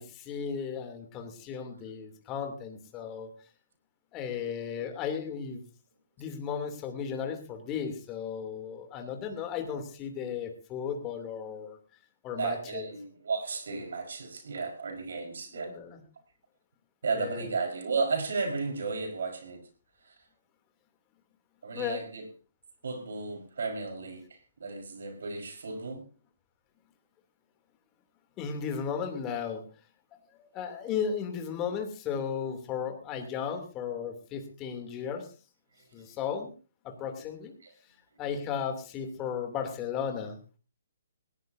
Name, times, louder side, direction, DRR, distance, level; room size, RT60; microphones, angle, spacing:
voice 1, 0.0-3.3 4.1-5.6 6.2-11.8 12.2-12.9 15.6-16.0 17.1-17.5 21.7-22.0 28.4-29.7 30.3-35.3 35.9-36.5 36.8-37.5 38.2-40.4, left 7 dB, 25° left, 3.0 m, -35 dB
voice 2, 12.4-15.7 17.0-19.7 20.0-20.1 21.6-22.3 22.8-26.0 37.6-37.7, right 4 dB, 70° right, 4.8 m, -34 dB
19.5 x 17.0 x 2.7 m
hypercardioid pair, 145°, 0 cm